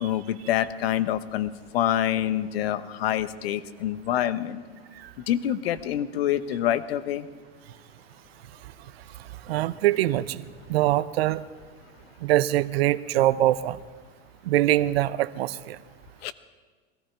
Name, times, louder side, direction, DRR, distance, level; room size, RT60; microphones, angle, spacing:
voice 1, 0.0-4.6 5.3-7.3 16.2-16.3, left 11 dB, 75° left, 14 dB, 1.0 m, -26 dB
voice 2, 9.5-10.4 10.7-11.4 12.2-13.8 14.5-15.8, right 14 dB, 75° right, 16 dB, 0.8 m, -23 dB
22.0 x 14.5 x 4.5 m, 1.4 s
hypercardioid pair, 100°, 30 cm